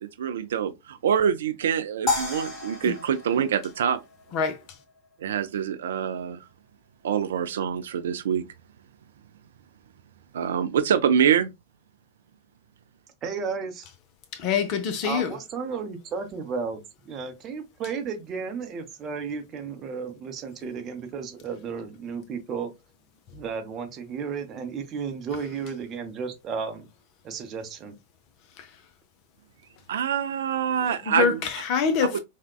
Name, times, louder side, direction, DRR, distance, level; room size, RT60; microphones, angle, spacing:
voice 1, 0.0-4.0 5.2-6.5 7.0-8.4 10.3-11.5 29.9-31.4 32.1-32.2, right 8 dB, 60° right, 0.3 m, -25 dB
sound 1, 2.1-4.4, left 3 dB, 20° left, 1.5 m, -31 dB
voice 2, 13.2-13.9 15.0-22.7 23.3-26.9 27.2-28.0, right 5 dB, 30° right, 0.7 m, -33 dB
voice 3, 14.3-15.3 28.6-28.7 30.9-32.2, left 6 dB, 40° left, 0.6 m, -25 dB
3.4 x 2.2 x 2.3 m
figure-of-eight pair, 90°, 0 cm